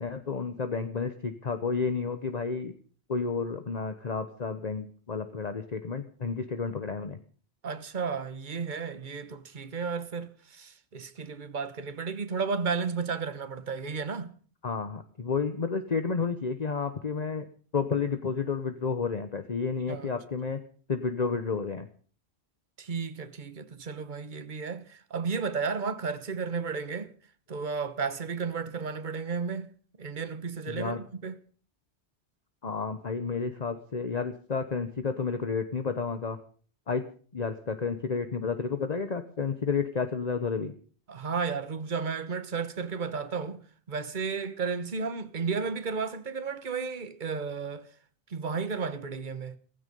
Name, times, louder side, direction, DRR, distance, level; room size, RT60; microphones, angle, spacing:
voice 1, 0.0-2.7 3.1-7.2 14.6-17.5 17.7-20.6 20.9-21.9 30.7-31.0 32.6-36.4 36.9-37.0 37.3-40.7, left 5 dB, 40° left, 1.1 m, -31 dB
voice 2, 7.6-14.3 19.9-20.1 22.8-27.1 27.5-29.7 30.0-31.3 41.1-43.6 43.9-47.9 48.3-49.6, right 5 dB, 45° right, 1.3 m, -33 dB
16.5 x 16.0 x 5.4 m
omnidirectional pair, 1.1 m